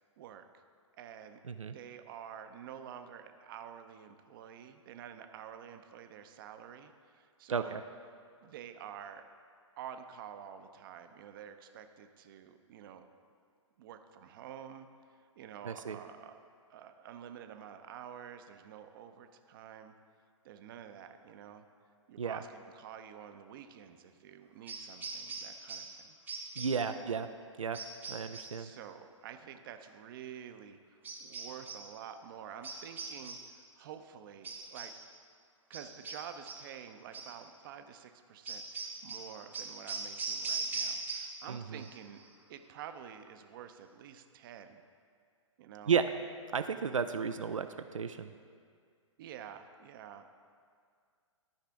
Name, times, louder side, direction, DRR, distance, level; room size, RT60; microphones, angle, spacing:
voice 1, 0.9-1.4 1.7-7.8 8.4-9.2 9.8-13.1 13.8-16.4 16.7-19.9 20.4-21.6 22.1-26.2 26.9-27.2 28.6-34.9 35.7-42.2 42.5-44.8 45.6-45.9 49.2-50.3, right 9 dB, 45° right, 8 dB, 0.6 m, -49 dB
voice 2, 7.5-7.8 15.6-16.0 22.2-22.4 26.6-27.3 27.6-27.8 28.1-28.7 41.5-41.8 45.9-46.1 46.5-48.3, right 6 dB, 85° right, 8 dB, 0.4 m, -33 dB
sound 1, 24.7-26.0 26.3-26.9 27.7-28.6 31.0-31.9 32.6-33.6 34.4-35.1 35.7-36.7 37.1-37.4 38.5-41.5 41.8-42.3, right 4 dB, 10° right, 0.8 m, -41 dB
13.0 x 4.9 x 3.5 m, 2.2 s
figure-of-eight pair, 120°, 16 cm